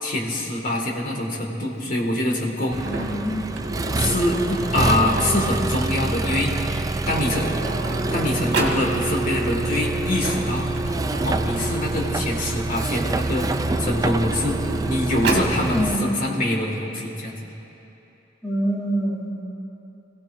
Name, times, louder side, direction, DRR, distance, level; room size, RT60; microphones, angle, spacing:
voice 1, 0.0-2.8 4.0-6.6 7.1-7.5 8.1-10.7 11.2-13.5 13.8-14.6 14.9-17.5, left 1 dB, 50° left, -1 dB, 2.1 m, -24 dB
Accelerating revving vroom, 2.7-16.0, right 2 dB, 20° right, 0.3 m, -26 dB
voice 2, 2.8-3.4 6.7-6.8 15.7-16.2 18.4-19.5, right 1 dB, 5° left, -5 dB, 2.9 m, -26 dB
Sliding door, 2.8-5.6 6.6-6.7 7.0-8.8 9.9-12.5 13.3-15.5, right 2 dB, 65° right, 2.0 m, -31 dB
26.0 x 16.5 x 2.7 m, 2.9 s
head